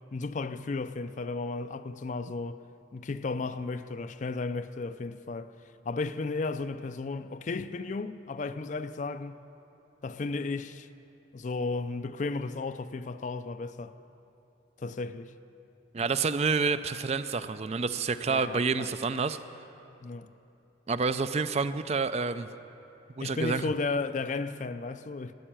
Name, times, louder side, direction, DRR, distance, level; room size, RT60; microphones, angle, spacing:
voice 1, 0.1-2.6 2.9-5.5 5.8-9.4 10.0-10.9 11.3-13.9 14.8-15.3 18.3-18.9 20.0-20.3 23.2-25.3, left 3 dB, 40° left, 0.4 m, -34 dB
voice 2, 15.9-19.4 20.9-22.5 23.2-23.7, right 4 dB, 35° right, 0.4 m, -28 dB
13.5 x 10.0 x 8.8 m
head